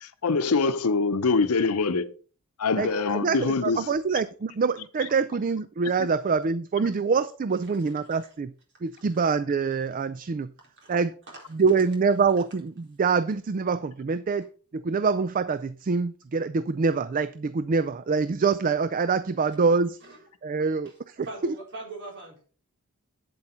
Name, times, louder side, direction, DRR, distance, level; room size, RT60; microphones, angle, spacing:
voice 1, 0.0-2.1 2.6-3.8 6.0-6.1, left 4 dB, 90° left, 0.8 m, -24 dB
voice 2, 2.8-8.5 8.8-10.5 10.9-11.2 11.5-14.5 14.7-20.0 20.4-21.5, right 5 dB, 40° right, 0.4 m, -25 dB
voice 3, 7.8-8.2 10.8-10.9 20.0-20.2 21.2-22.5, right 2 dB, 55° right, 4.1 m, -40 dB
8.6 x 7.9 x 4.3 m
head